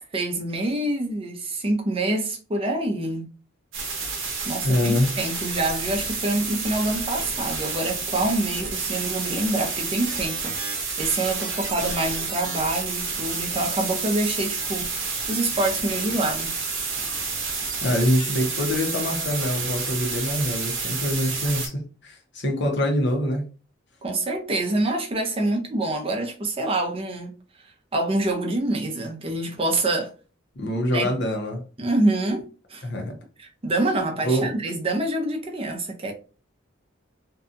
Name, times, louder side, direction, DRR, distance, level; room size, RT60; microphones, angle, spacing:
voice 1, 0.1-3.3 4.5-10.6 11.0-16.5 24.0-27.3 27.9-30.1 30.9-31.1 31.8-32.4 32.7-32.8 33.4-36.1, right 2 dB, 30° right, 0.5 m, -26 dB
sound 1, 3.7-21.7, right 4 dB, 70° right, 0.8 m, -29 dB
voice 2, 4.6-5.1 17.8-23.4 30.6-31.6 32.8-33.1 34.2-34.5, equal, 60° left, 0.7 m, -24 dB
2.7 x 2.3 x 2.5 m
head